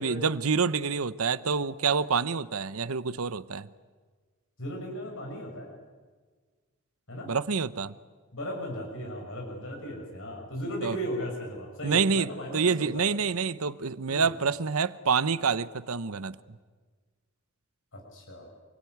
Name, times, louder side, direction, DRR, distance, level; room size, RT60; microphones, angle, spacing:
voice 1, 0.0-3.7 7.3-7.9 10.8-11.0 11.8-16.4, right 5 dB, 75° right, 0.9 m, -27 dB
voice 2, 4.6-5.7 7.1-7.3 8.3-13.0 14.1-14.3 17.9-18.5, equal, 65° left, 6.5 m, -36 dB
28.0 x 22.0 x 9.4 m
head